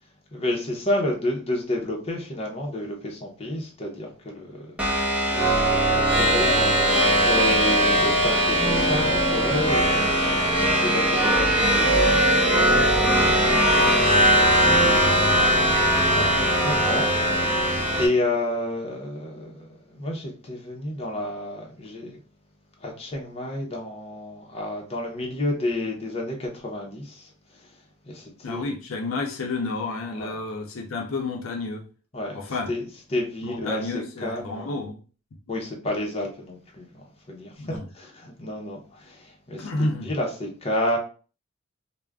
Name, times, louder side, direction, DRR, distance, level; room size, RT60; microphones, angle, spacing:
voice 1, 0.3-9.9 10.8-15.7 16.1-17.1 18.0-22.2 22.8-27.8 28.0-28.7 30.2-30.4 32.1-32.4 32.7-34.7 35.5-41.0, left 1 dB, 30° left, 0.6 m, -31 dB
sound 1, 4.8-18.1, right 1 dB, 5° right, 0.7 m, -20 dB
voice 2, 28.4-31.8 32.3-32.7 33.4-35.0 37.6-37.9 39.6-40.2, left 3 dB, 75° left, 0.5 m, -30 dB
2.3 x 2.0 x 3.3 m
head